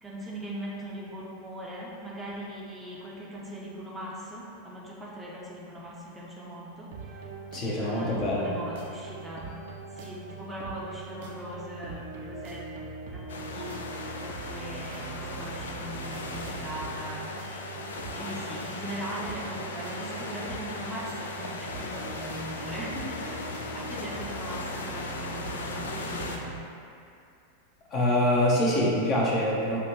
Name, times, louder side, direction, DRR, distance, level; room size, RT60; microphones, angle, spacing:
voice 1, 0.0-7.3 7.8-9.6 9.9-12.7 13.1-13.8 14.2-17.4 18.1-26.6, right 1 dB, 10° right, -5 dB, 0.7 m, -40 dB
sound 1, 6.9-26.6, right 4 dB, 55° right, 0.6 m, -41 dB
voice 2, 7.5-8.5 27.9-29.8, left 1 dB, 35° left, -4 dB, 0.9 m, -25 dB
sound 2, 13.3-26.4, left 3 dB, 65° left, 0.4 m, -38 dB
7.0 x 2.5 x 3.0 m, 2.5 s
figure-of-eight pair, 90°, 0 cm